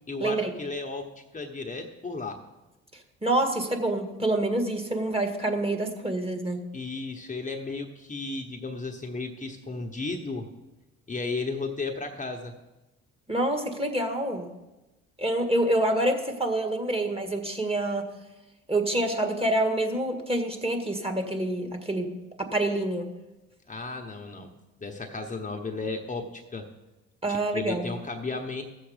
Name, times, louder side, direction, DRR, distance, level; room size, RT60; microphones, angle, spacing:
voice 1, 0.1-2.4 6.7-10.5 11.1-12.5 23.7-24.5 24.8-26.7 27.3-28.6, left 3 dB, 25° left, 3 dB, 1.1 m, -34 dB
voice 2, 3.2-6.6 13.3-14.5 15.2-18.1 18.7-22.1 22.4-23.1 27.2-27.9, right 1 dB, 20° right, 5 dB, 1.8 m, -27 dB
14.0 x 7.3 x 5.1 m, 1.0 s
supercardioid pair, 75°, 32 cm